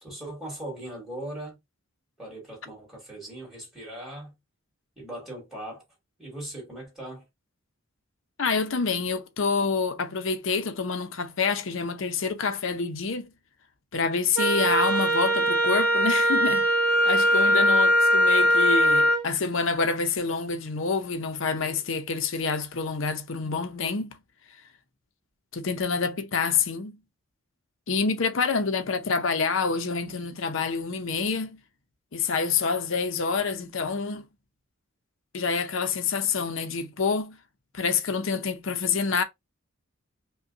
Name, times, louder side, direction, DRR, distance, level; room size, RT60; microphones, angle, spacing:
voice 1, 0.0-1.6 2.2-4.3 5.0-5.8 6.2-7.2, right 1 dB, ahead, 2.2 m, -39 dB
voice 2, 8.4-13.3 13.9-16.7 17.0-24.2 25.5-27.0 27.9-31.6 32.1-34.3 35.3-37.4 37.7-39.2, left 5 dB, 65° left, 0.6 m, -27 dB
Wind instrument woodwind instrument, 14.4-19.2, equal, 85° right, 0.8 m, -21 dB
5.2 x 2.2 x 2.6 m
head